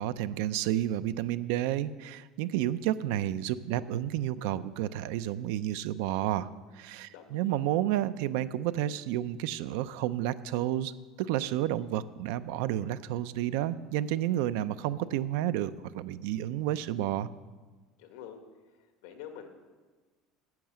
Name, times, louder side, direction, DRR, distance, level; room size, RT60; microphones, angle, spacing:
voice 1, 0.0-6.5 6.7-17.3, right 12 dB, 75° right, 14 dB, 0.5 m, -31 dB
voice 2, 7.1-7.6 18.0-18.4 18.8-19.5, left 9 dB, 75° left, 6 dB, 1.6 m, -47 dB
10.5 x 8.0 x 7.5 m, 1.3 s
cardioid pair, 170°, 0 cm